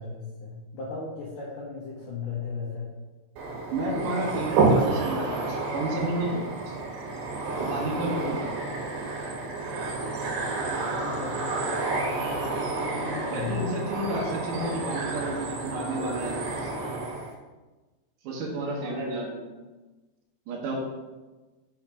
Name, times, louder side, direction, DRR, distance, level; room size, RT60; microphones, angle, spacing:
voice 1, 0.0-2.9 7.9-8.4 10.6-13.7 18.8-19.2, left 4 dB, 85° left, -5 dB, 1.8 m, -36 dB
sound 1, 3.4-17.3, right 3 dB, 70° right, 2.4 m, -29 dB
voice 2, 3.7-6.8 7.6-8.5 13.3-16.3 18.2-19.4 20.5-20.8, right 1 dB, 90° right, -2 dB, 1.8 m, -31 dB
5.7 x 5.4 x 4.8 m, 1.2 s
omnidirectional pair, 5.6 m